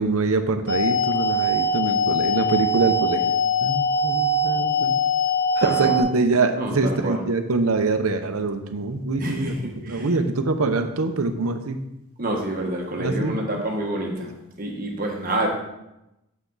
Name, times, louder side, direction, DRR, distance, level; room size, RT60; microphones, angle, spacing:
voice 1, 0.0-3.3 3.6-4.9 5.6-11.8 13.0-13.4, right 3 dB, 80° right, 7 dB, 0.8 m, -24 dB
sound 1, 0.7-6.0, left 1 dB, 45° left, 1.1 m, -22 dB
voice 2, 5.6-6.0 6.6-7.2 9.2-10.1 12.2-14.3 14.6-15.5, right 1 dB, 40° right, 0 dB, 1.4 m, -28 dB
8.4 x 7.2 x 4.0 m, 0.90 s
head